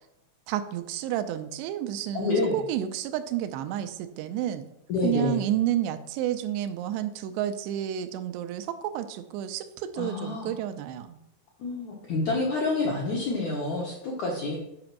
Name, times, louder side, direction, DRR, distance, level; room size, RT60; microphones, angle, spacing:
voice 1, 0.5-4.7 5.0-11.2, right 11 dB, 90° right, 9 dB, 2.8 m, -30 dB
voice 2, 2.1-2.6 4.9-5.4 10.0-10.5 11.6-14.6, left 3 dB, 75° left, -1 dB, 1.7 m, -28 dB
8.7 x 5.1 x 6.0 m, 0.84 s
omnidirectional pair, 4.9 m